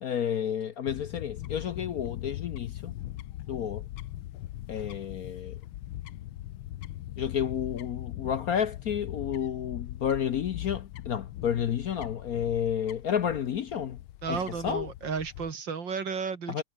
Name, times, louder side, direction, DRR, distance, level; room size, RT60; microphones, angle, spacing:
voice 1, 0.0-2.9 3.4-3.8 4.7-5.6 7.2-14.0 14.3-14.9 16.5-16.6, left 8 dB, 60° left, 1.0 m, -31 dB
Fowl / Bird, 0.9-15.5, left 14 dB, 75° left, 1.6 m, -40 dB
voice 2, 14.2-16.6, right 5 dB, 60° right, 3.0 m, -33 dB
omnidirectional pair, 2.3 m